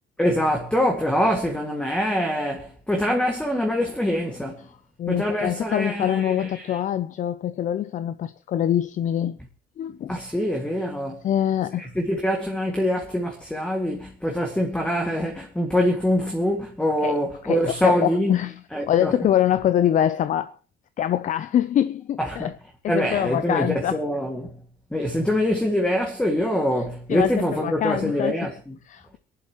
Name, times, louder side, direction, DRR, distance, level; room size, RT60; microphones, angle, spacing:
voice 1, 0.2-4.7 5.1-6.8 10.1-11.3 11.8-18.4 18.7-19.1 22.2-22.5 22.9-24.5 24.9-28.7, equal, 5° left, 2.1 m, -24 dB
voice 2, 5.0-9.4 9.8-10.2 11.2-11.9 17.0-18.5 18.9-20.6 21.0-22.5 22.8-24.0 27.1-28.4 28.9-29.2, left 10 dB, 50° left, 0.6 m, -24 dB
28.5 x 11.0 x 3.1 m
cardioid pair, 110°, 17 cm